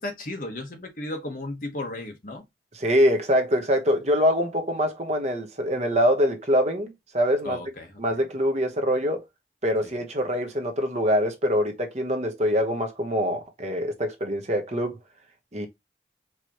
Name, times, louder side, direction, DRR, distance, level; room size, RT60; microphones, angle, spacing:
voice 1, 0.0-2.4 7.4-8.2 9.8-9.9, left 2 dB, 50° left, 1.2 m, -35 dB
voice 2, 2.7-7.6 8.0-9.2 9.6-15.0 15.5-15.7, equal, 40° right, 0.9 m, -24 dB
4.7 x 2.9 x 2.9 m
head